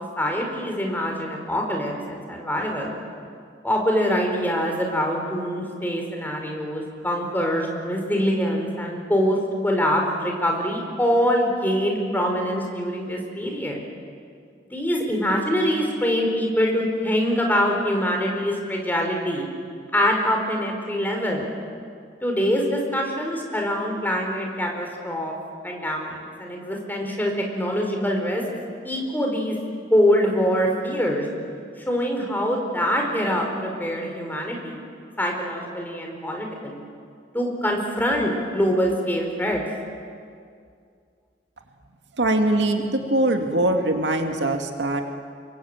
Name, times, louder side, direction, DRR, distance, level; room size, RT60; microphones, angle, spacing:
voice 1, 0.2-3.0 3.6-9.4 9.6-13.8 14.7-19.5 19.9-21.5 22.2-25.4 25.6-28.4 28.8-29.6 29.9-31.2 31.8-34.8 35.2-36.9 37.3-39.6, equal, 10° left, 1 dB, 4.7 m, -24 dB
voice 2, 42.2-45.0, right 1 dB, 75° right, 4 dB, 2.4 m, -22 dB
28.0 x 23.5 x 9.1 m, 2.2 s
head